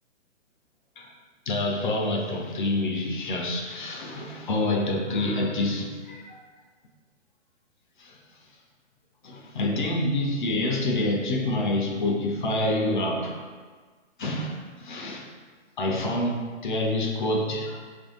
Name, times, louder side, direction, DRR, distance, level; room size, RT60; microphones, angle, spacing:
voice 1, 1.5-6.4 8.0-8.2 9.2-13.4 14.2-15.2 15.8-17.8, left 1 dB, 45° left, 1 dB, 0.5 m, -27 dB
3.2 x 2.6 x 3.7 m, 1.5 s
figure-of-eight pair, 120°, 36 cm